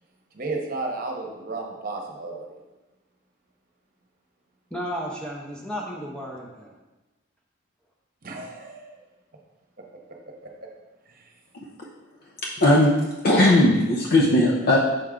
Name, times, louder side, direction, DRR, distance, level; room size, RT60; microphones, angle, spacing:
voice 1, 0.3-2.6 8.2-9.0 10.6-10.7 11.1-11.3, right 3 dB, 45° right, 1 dB, 1.0 m, -33 dB
voice 2, 4.7-6.7, equal, 5° left, -3 dB, 0.7 m, -33 dB
voice 3, 12.6-12.9 13.2-14.8, left 1 dB, 50° left, -3 dB, 0.7 m, -17 dB
6.6 x 4.6 x 3.7 m, 1.1 s
head